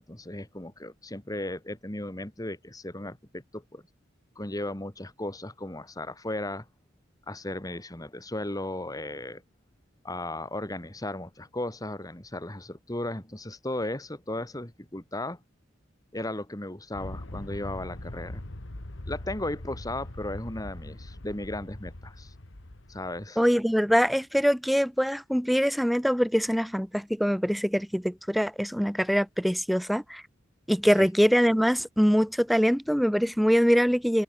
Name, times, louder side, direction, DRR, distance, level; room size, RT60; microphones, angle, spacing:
voice 1, 0.0-3.8 4.4-6.7 7.3-9.4 10.0-15.4 16.1-18.4 19.1-22.3 22.9-23.4 31.0-31.1, left 1 dB, 20° left, 1.9 m, -35 dB
Aircraft, 16.9-23.3, left 1 dB, 70° left, 1.9 m, -41 dB
voice 2, 23.4-30.2 30.7-34.2, equal, ahead, 0.6 m, -23 dB
head